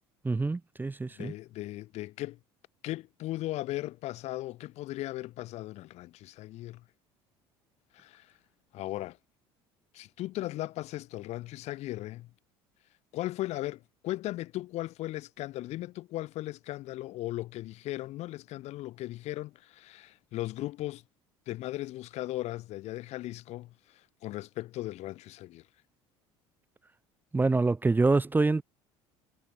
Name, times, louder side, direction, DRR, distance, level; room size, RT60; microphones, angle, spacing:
voice 1, 0.2-1.3 27.3-28.6, right 3 dB, 15° right, 0.8 m, -26 dB
voice 2, 1.2-2.4 2.8-6.8 7.9-8.3 8.7-9.2 9.9-12.3 13.1-21.0 21.5-25.6, left 16 dB, 65° left, 2.3 m, -37 dB
supercardioid pair, 80°, 12 cm